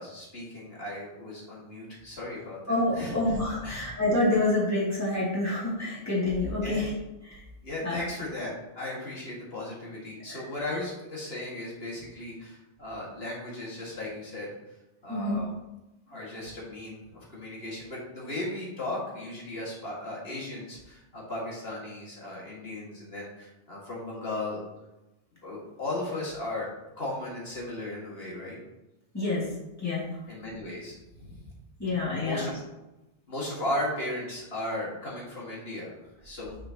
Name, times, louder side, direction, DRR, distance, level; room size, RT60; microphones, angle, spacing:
voice 1, 0.0-3.1 3.6-3.8 6.6-6.8 7.6-14.5 15.0-15.5 16.1-24.6 25.4-26.7 26.9-28.6 30.3-31.4 32.1-32.6 33.3-35.9 36.2-36.6, left 1 dB, 75° left, -5 dB, 2.3 m, -36 dB
voice 2, 2.7-6.9 7.3-7.4 7.8-8.0 10.3-10.4 15.1-15.4 29.1-29.5 29.8-30.0 31.8-32.5, left 2 dB, 15° left, -8 dB, 2.6 m, -27 dB
7.7 x 6.5 x 2.9 m, 0.98 s
omnidirectional pair, 1.0 m